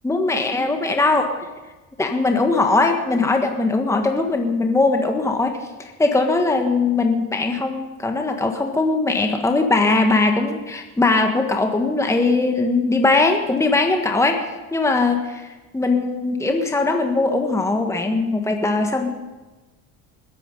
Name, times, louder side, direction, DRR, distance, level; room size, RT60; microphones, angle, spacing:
voice 1, 0.0-1.5 2.0-5.7 6.0-14.5 14.7-19.1, left 3 dB, 10° left, 4 dB, 1.4 m, -20 dB
21.0 x 9.3 x 5.3 m, 1.2 s
supercardioid pair, 95°, 34 cm